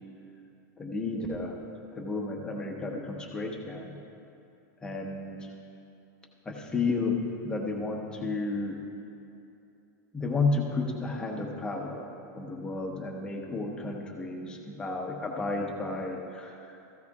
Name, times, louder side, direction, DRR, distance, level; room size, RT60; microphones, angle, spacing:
voice 1, 0.8-1.6 1.9-4.0 4.8-5.5 6.4-7.2 7.4-8.8 10.1-16.8, left 3 dB, 10° left, -1 dB, 1.0 m, -32 dB
16.0 x 15.0 x 2.4 m, 2.7 s
supercardioid pair, 165°, 10 cm